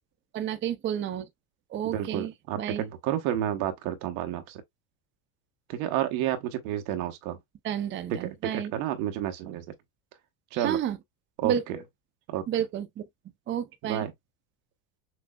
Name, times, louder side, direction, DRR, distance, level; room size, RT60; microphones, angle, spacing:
voice 1, 0.3-1.3 1.7-2.8 7.6-8.7 10.5-11.0 11.4-11.6 12.5-13.0 13.5-14.1, right 9 dB, 30° right, 0.5 m, -31 dB
voice 2, 1.9-4.6 5.7-7.4 8.1-9.7 10.5-10.8 11.4-11.8 12.3-12.4 13.8-14.1, right 11 dB, 85° right, 1.0 m, -30 dB
6.1 x 2.1 x 2.2 m
supercardioid pair, 120°, 42 cm